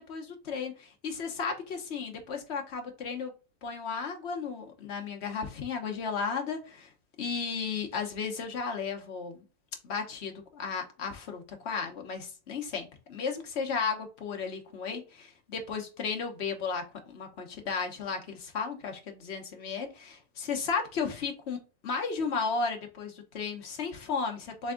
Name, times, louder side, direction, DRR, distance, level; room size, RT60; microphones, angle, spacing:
voice 1, 0.0-3.3 3.6-6.9 7.2-9.4 9.8-24.7, left 5 dB, 55° left, 1.1 m, -34 dB
3.4 x 3.4 x 3.6 m
omnidirectional pair, 1.4 m